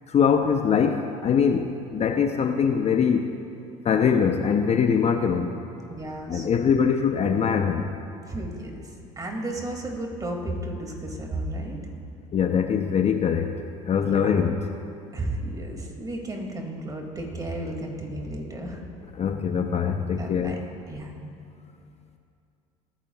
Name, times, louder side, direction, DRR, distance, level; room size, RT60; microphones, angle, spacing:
voice 1, 0.1-3.3 3.8-5.6 6.3-7.9 12.3-13.6 13.8-14.6 19.2-20.6, left 7 dB, 40° left, 6 dB, 0.8 m, -22 dB
voice 2, 5.9-6.6 8.2-11.8 14.0-14.3 15.1-18.8 20.2-20.6 20.9-21.2, right 1 dB, 20° right, 1 dB, 2.5 m, -33 dB
21.5 x 10.0 x 2.4 m, 2.5 s
hypercardioid pair, 75°, 17 cm